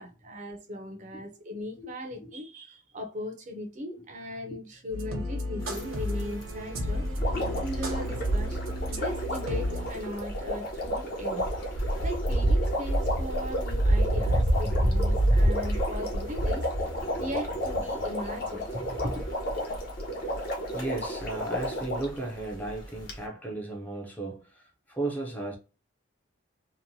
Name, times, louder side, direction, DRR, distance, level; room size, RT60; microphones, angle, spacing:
voice 1, 0.0-7.1 7.6-11.5 12.0-16.7 17.2-19.2, left 1 dB, 35° right, 0.5 m, -38 dB
sound 1, 4.9-9.9, equal, 90° right, 0.9 m, -33 dB
sound 2, 5.6-23.2, right 1 dB, 65° left, 1.1 m, -30 dB
Water, 7.2-22.2 23.1-23.2, equal, 50° left, 0.7 m, -34 dB
voice 2, 20.7-25.6, right 2 dB, 10° left, 0.5 m, -35 dB
2.9 x 2.1 x 2.6 m
head